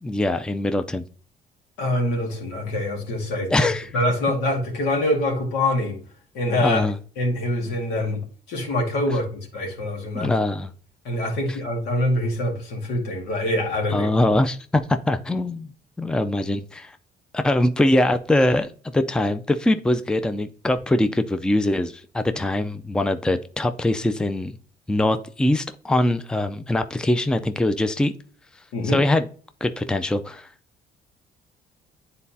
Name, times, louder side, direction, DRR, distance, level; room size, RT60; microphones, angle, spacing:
voice 1, 0.0-1.1 3.5-3.9 6.6-7.0 10.1-10.7 11.5-11.6 13.9-15.7 16.0-17.0 17.3-24.6 24.9-28.1 28.8-29.3 29.6-30.5, left 1 dB, 5° left, 0.4 m, -22 dB
voice 2, 1.8-3.7 3.9-6.0 6.3-6.8 7.2-10.3 11.0-14.1 28.7-29.0, left 1 dB, 90° left, 2.0 m, -25 dB
9.6 x 4.1 x 2.8 m
cardioid pair, 110°, 17 cm